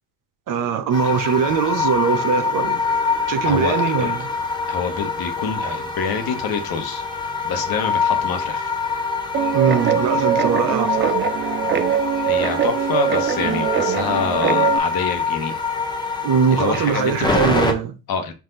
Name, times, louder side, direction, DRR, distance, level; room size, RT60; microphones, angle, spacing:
voice 1, 0.5-2.8 3.3-4.3 9.5-11.2 16.2-17.9, right 7 dB, 45° right, 0.8 m, -21 dB
sound 1, 0.9-17.7, left 4 dB, 10° left, 1.0 m, -25 dB
voice 2, 3.4-4.1 4.7-7.0 7.4-8.7 12.2-15.6 16.5-17.3 18.1-18.3, left 5 dB, 50° left, 1.1 m, -26 dB
Guitar, 9.3-14.8, right 9 dB, 25° right, 0.4 m, -22 dB
4.7 x 2.6 x 3.9 m
hypercardioid pair, 75°, 45 cm